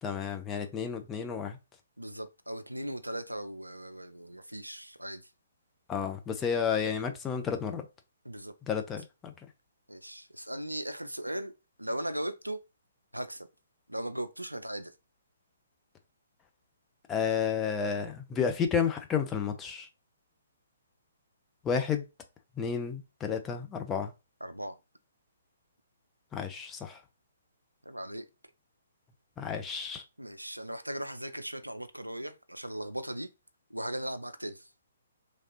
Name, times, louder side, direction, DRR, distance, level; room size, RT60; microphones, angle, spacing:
voice 1, 0.0-1.6 5.9-7.8 8.7-9.3 17.1-19.9 21.6-22.0 22.6-24.1 26.3-27.0 29.4-30.0, left 7 dB, 15° left, 0.5 m, -31 dB
voice 2, 2.0-5.2 8.2-8.5 9.9-11.5 11.8-12.6 13.1-13.5 13.9-14.9 24.4-24.8 27.9-28.2 30.2-33.3 33.7-34.7, right 1 dB, 85° right, 0.4 m, -38 dB
3.2 x 2.4 x 2.8 m
figure-of-eight pair, 130°, 0 cm